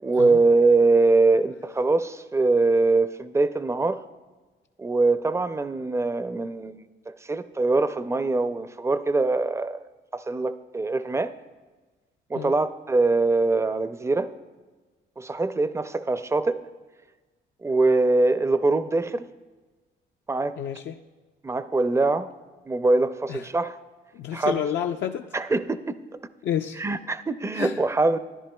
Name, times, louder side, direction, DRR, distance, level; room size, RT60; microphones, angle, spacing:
voice 1, 0.0-4.0 4.8-9.8 10.1-11.3 12.3-14.3 15.2-16.6 17.6-19.2 20.3-20.5 21.4-22.3 22.7-23.8 24.3-24.6 25.3-26.0 26.8-28.2, right 3 dB, 15° right, 13 dB, 0.4 m, -23 dB
voice 2, 20.6-21.0 23.3-23.4 24.1-25.2 26.4-26.8 27.5-27.8, left 9 dB, 65° left, 4 dB, 0.4 m, -29 dB
13.5 x 10.5 x 2.2 m, 1.3 s
cardioid pair, 90°, 20 cm